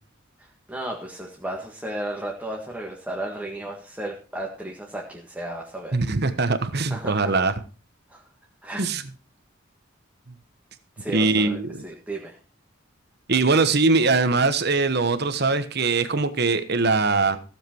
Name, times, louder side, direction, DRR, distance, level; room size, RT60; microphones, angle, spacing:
voice 1, 0.4-6.0 6.9-7.3 8.1-8.3 8.6-8.9 11.0-12.4, right 1 dB, 5° right, -2 dB, 1.8 m, -34 dB
voice 2, 5.9-7.5 8.8-9.0 11.1-11.8 13.3-17.4, right 3 dB, 55° right, 11 dB, 1.2 m, -21 dB
15.5 x 7.5 x 4.6 m, 0.36 s
head